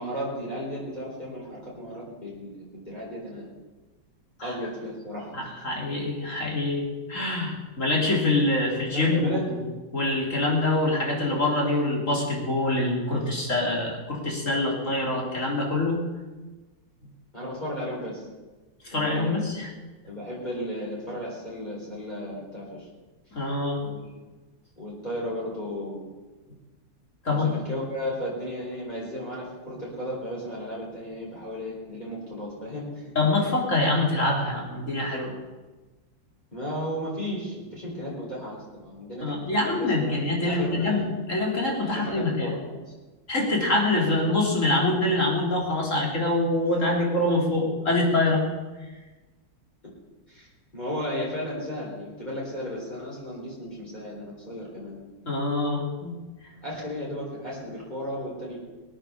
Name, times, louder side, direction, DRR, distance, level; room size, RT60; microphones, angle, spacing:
voice 1, 0.0-3.5 4.4-5.5 8.9-9.5 17.3-18.3 18.9-19.5 20.0-22.9 23.8-24.0 24.8-26.1 27.3-33.1 36.5-40.1 40.4-41.1 41.9-42.9 50.3-50.5 50.7-55.3 56.6-58.6, equal, 20° left, -6 dB, 4.3 m, -34 dB
voice 2, 5.3-9.7 9.9-16.1 18.8-19.7 23.3-23.9 27.2-27.5 33.2-35.4 39.2-42.6 43.3-48.4 55.3-56.2, left 2 dB, 40° left, -2 dB, 3.9 m, -25 dB
20.5 x 8.9 x 6.9 m, 1.2 s
omnidirectional pair, 2.0 m